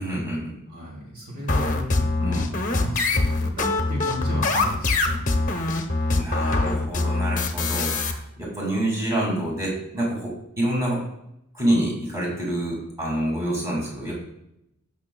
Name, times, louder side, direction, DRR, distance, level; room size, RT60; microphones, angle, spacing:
voice 1, 0.0-0.6 2.2-2.4 6.1-11.0 11.5-14.2, right 1 dB, 15° right, -4 dB, 2.4 m, -27 dB
voice 2, 0.7-5.2 5.7-6.2, equal, 45° right, -3 dB, 2.6 m, -34 dB
sound 1, 1.5-8.1, left 3 dB, 35° left, 0.9 m, -23 dB
15.0 x 6.0 x 2.3 m, 0.82 s
head